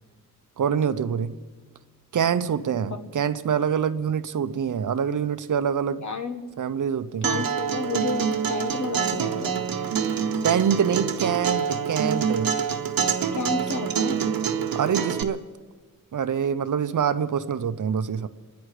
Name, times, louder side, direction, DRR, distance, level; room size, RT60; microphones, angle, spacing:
voice 1, 0.6-1.3 2.1-6.1 6.6-7.4 10.4-12.6 14.7-15.4 16.1-18.3, right 7 dB, 60° right, 12 dB, 0.7 m, -25 dB
voice 2, 6.0-6.4 7.2-9.6 13.3-14.3, left 4 dB, 55° left, 8 dB, 1.4 m, -31 dB
Acoustic guitar, 7.2-15.2, right 7 dB, 85° right, 1.1 m, -26 dB
28.5 x 10.5 x 4.9 m, 1.4 s
wide cardioid pair, 120°, 34 cm